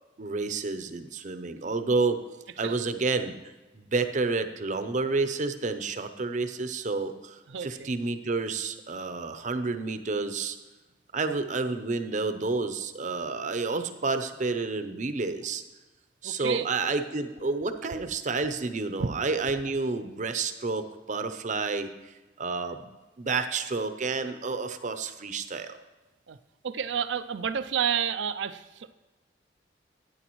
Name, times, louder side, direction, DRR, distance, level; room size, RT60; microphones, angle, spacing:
voice 1, 0.2-2.2 2.6-3.3 3.7-10.6 11.1-15.6 16.2-25.8, right 3 dB, 45° right, 9 dB, 0.6 m, -30 dB
voice 2, 7.5-7.9 16.2-16.7 26.3-26.4 26.6-28.9, right 8 dB, 85° right, 12 dB, 0.5 m, -30 dB
12.5 x 9.9 x 3.1 m, 1.1 s
head